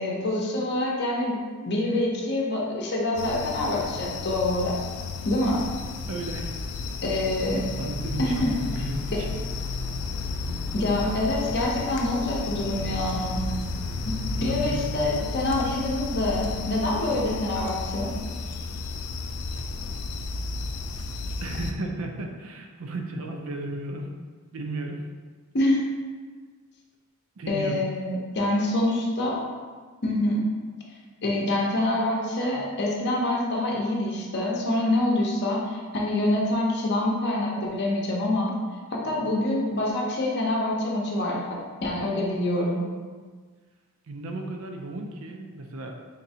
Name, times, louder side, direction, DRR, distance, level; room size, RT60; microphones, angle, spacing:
voice 1, 0.0-4.8 5.2-5.7 7.0-7.6 8.2-8.5 9.1-9.2 10.7-13.4 14.1-14.2 14.4-18.1 25.5-25.8 27.5-29.4 30.0-30.4 31.2-38.5 38.9-42.9, left 1 dB, 50° left, -2 dB, 0.7 m, -26 dB
sound 1, 3.2-21.7, left 3 dB, 90° left, 0.3 m, -32 dB
voice 2, 6.1-6.6 7.7-9.3 14.3-15.0 21.4-24.1 24.5-25.0 27.4-27.8 44.1-45.9, right 2 dB, 65° right, 3 dB, 0.4 m, -34 dB
3.9 x 3.1 x 2.8 m, 1.5 s
head